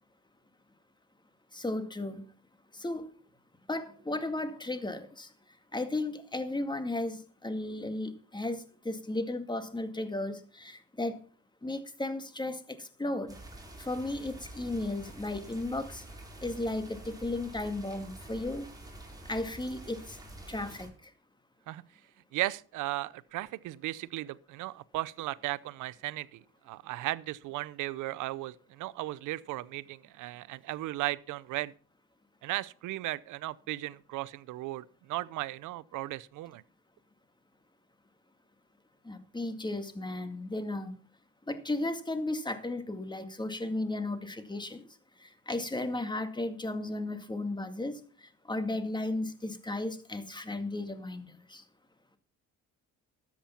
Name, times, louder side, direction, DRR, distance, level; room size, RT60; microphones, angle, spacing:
voice 1, 1.5-2.2 2.7-3.1 3.7-5.3 5.7-11.2 11.6-13.4 13.8-16.0 16.4-18.7 19.3-20.2 20.5-21.1 39.0-40.9 41.5-44.8 45.2-51.6, left 2 dB, 15° left, 2.0 m, -35 dB
sound 1, 13.3-20.9, right 1 dB, 10° right, 5.1 m, -47 dB
voice 2, 22.3-31.7 32.4-36.6, right 17 dB, 90° right, 0.6 m, -36 dB
13.0 x 8.7 x 5.7 m
cardioid pair, 90°, 30 cm